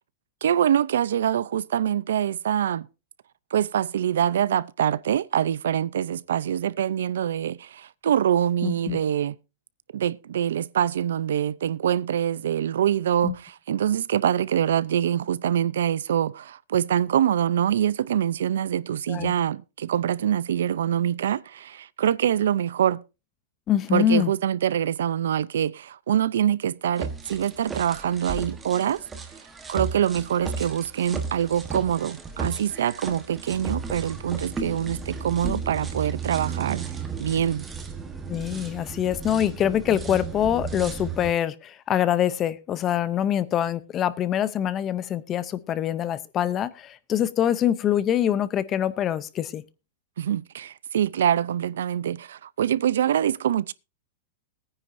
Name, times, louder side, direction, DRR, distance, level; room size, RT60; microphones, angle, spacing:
voice 1, 0.4-2.9 3.5-9.4 9.9-23.0 23.9-29.0 29.7-36.8 37.2-37.7 50.2-53.7, right 10 dB, 90° right, 0.5 m, -24 dB
voice 2, 8.6-9.0 13.2-13.3 19.1-19.3 23.7-24.3 38.3-49.6, left 10 dB, 20° left, 0.6 m, -24 dB
sound 1, 27.0-41.3, right 5 dB, 10° right, 1.2 m, -34 dB
20.5 x 9.7 x 2.6 m
supercardioid pair, 170°, 0 cm